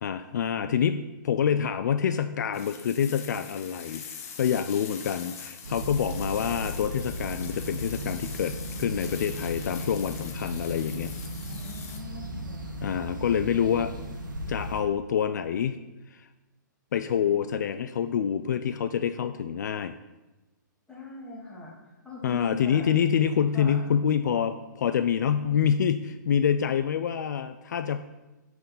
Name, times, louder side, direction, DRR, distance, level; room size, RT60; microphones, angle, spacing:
voice 1, 0.0-4.0 4.4-11.1 12.8-13.9 14.5-15.8 16.1-16.3 16.9-20.0 22.2-28.0, left 8 dB, 65° left, 11 dB, 0.4 m, -27 dB
sound 1, 2.5-12.0, left 7 dB, 45° left, 1.1 m, -43 dB
sound 2, 5.6-14.8, equal, 90° right, 1.6 m, -36 dB
voice 2, 11.4-12.7 20.9-22.9 23.5-23.8, left 1 dB, 5° left, -5 dB, 2.1 m, -42 dB
6.0 x 5.2 x 5.5 m, 1.1 s
hypercardioid pair, 135°, 10 cm